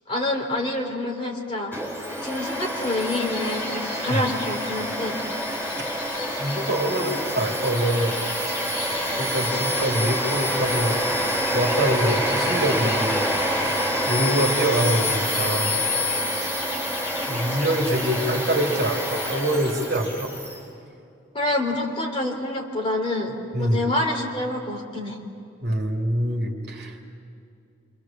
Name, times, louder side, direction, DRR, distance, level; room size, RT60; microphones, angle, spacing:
voice 1, 0.1-1.8 2.2-5.2 21.3-25.2, left 2 dB, 25° left, 0 dB, 3.3 m, -27 dB
Domestic sounds home sounds, 1.7-20.6, equal, 10° left, 5.9 m, -26 dB
sound 1, 2.8-20.2, left 3 dB, 50° left, 3.5 m, -41 dB
voice 2, 6.4-8.2 9.2-11.0 11.5-13.3 14.0-15.9 16.3-16.5 17.2-20.3 23.5-23.8 25.6-27.0, right 1 dB, 55° right, 1 dB, 2.8 m, -25 dB
28.5 x 25.5 x 7.4 m, 2.5 s
head